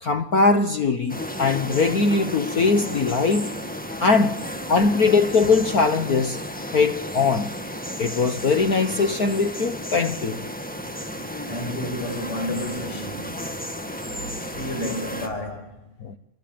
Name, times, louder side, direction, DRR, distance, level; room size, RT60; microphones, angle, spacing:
voice 1, 0.0-3.6 4.0-6.4 6.7-7.5 8.0-10.5 16.0-16.2, left 4 dB, 75° left, 0.8 m, -21 dB
sound 1, 1.1-15.3, equal, 5° left, 0.6 m, -33 dB
voice 2, 11.4-13.7 14.0-15.8, left 1 dB, 50° left, 6.8 m, -32 dB
28.5 x 20.5 x 8.8 m
omnidirectional pair, 3.4 m